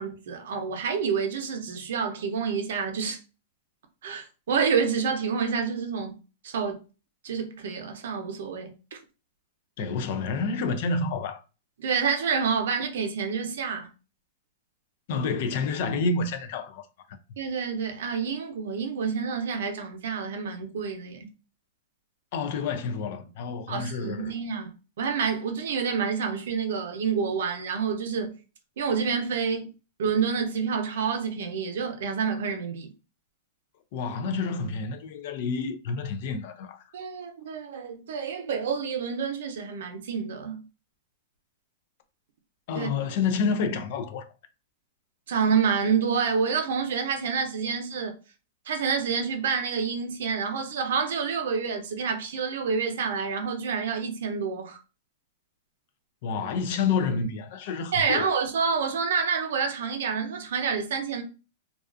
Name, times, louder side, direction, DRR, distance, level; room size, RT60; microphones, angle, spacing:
voice 1, 0.0-3.2 4.0-6.2 6.4-6.8 7.2-9.0 11.8-13.9 17.4-21.3 23.7-28.3 28.8-29.7 30.0-32.9 36.9-40.6 42.7-42.9 45.3-48.1 48.7-54.8 57.9-61.2, right 6 dB, 65° right, 0.6 m, -28 dB
voice 2, 9.8-11.4 15.1-16.9 22.3-24.3 33.9-36.8 42.7-44.3 56.2-58.3, left 4 dB, 40° left, 0.3 m, -29 dB
2.4 x 2.3 x 2.4 m
supercardioid pair, 175°, 0 cm